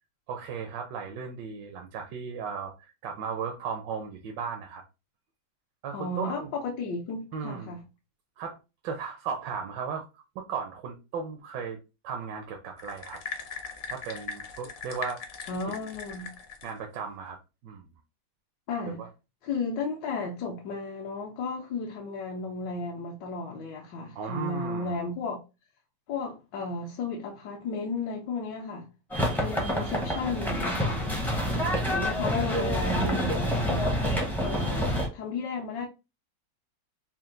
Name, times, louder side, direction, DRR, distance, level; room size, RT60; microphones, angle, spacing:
voice 1, 0.3-2.7 3.0-4.8 5.8-6.5 7.3-7.7 8.4-8.6 8.8-11.8 12.0-13.2 13.9-15.2 16.6-17.4 17.6-17.9 18.9-19.1 24.2-25.0, right 6 dB, 80° right, 1.3 m, -36 dB
voice 2, 5.9-7.8 15.5-16.3 18.7-19.0 19.4-25.4 26.1-28.9 29.4-31.1 31.9-34.0 34.4-35.9, left 3 dB, 80° left, 1.3 m, -34 dB
sound 1, 12.8-16.8, left 5 dB, 55° left, 0.9 m, -39 dB
sound 2, 29.1-35.1, equal, 5° left, 0.3 m, -27 dB
4.3 x 2.1 x 3.7 m
omnidirectional pair, 1.9 m